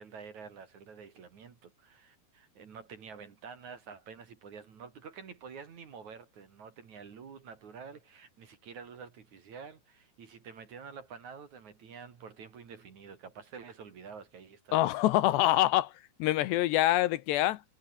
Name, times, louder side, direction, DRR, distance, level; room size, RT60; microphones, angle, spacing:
voice 1, 0.0-14.9, right 6 dB, 45° right, 3.4 m, -48 dB
voice 2, 14.7-15.9 16.2-17.6, left 15 dB, 80° left, 3.0 m, -25 dB
omnidirectional pair, 5.1 m